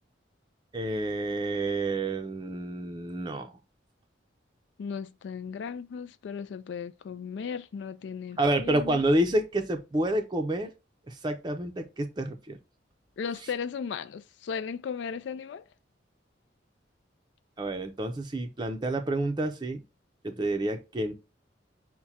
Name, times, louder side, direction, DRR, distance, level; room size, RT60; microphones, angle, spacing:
voice 1, 0.7-3.5 8.4-10.7 11.1-12.6 17.6-19.8 20.2-21.1, right 1 dB, 25° right, 0.5 m, -29 dB
voice 2, 4.8-9.0 13.2-15.7, left 6 dB, 70° left, 0.3 m, -36 dB
5.9 x 2.2 x 4.1 m
head